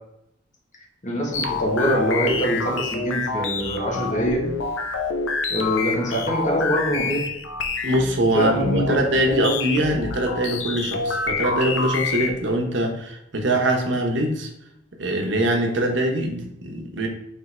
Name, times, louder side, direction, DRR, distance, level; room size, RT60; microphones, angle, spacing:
voice 1, 1.0-4.5 5.5-7.3 8.3-9.0, equal, 40° left, -1 dB, 1.2 m, -24 dB
sound 1, 1.3-12.5, left 4 dB, 90° left, 0.6 m, -27 dB
voice 2, 7.8-14.5 15.0-17.1, right 1 dB, 65° right, 2 dB, 0.9 m, -23 dB
3.5 x 3.4 x 4.2 m, 0.80 s
head